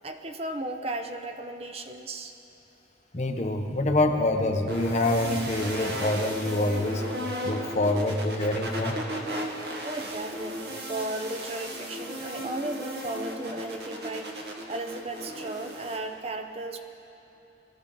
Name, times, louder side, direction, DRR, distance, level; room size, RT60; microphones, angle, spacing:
voice 1, 0.0-2.3 9.8-16.8, right 2 dB, 35° right, 6 dB, 0.6 m, -35 dB
voice 2, 3.1-7.0 7.4-9.0, left 2 dB, 40° left, 4 dB, 0.9 m, -26 dB
sound 1, 4.7-16.0, equal, 60° right, 1.6 m, -35 dB
21.0 x 13.0 x 3.9 m, 3.0 s
head